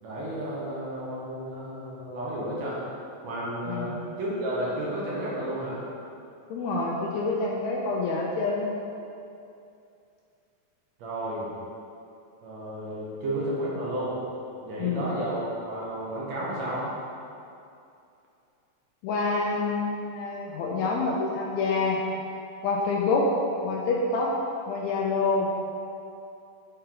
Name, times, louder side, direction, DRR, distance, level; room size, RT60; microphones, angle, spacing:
voice 1, 0.0-2.8 3.2-5.8 11.0-11.5 12.4-14.1 14.6-16.9, right 1 dB, 65° right, -6 dB, 2.1 m, -32 dB
voice 2, 6.5-8.7 14.8-15.1 19.0-22.0 22.6-23.3 23.6-24.3 24.7-25.5, left 3 dB, 80° left, -2 dB, 1.8 m, -27 dB
6.7 x 4.3 x 3.8 m, 2.6 s
omnidirectional pair, 3.6 m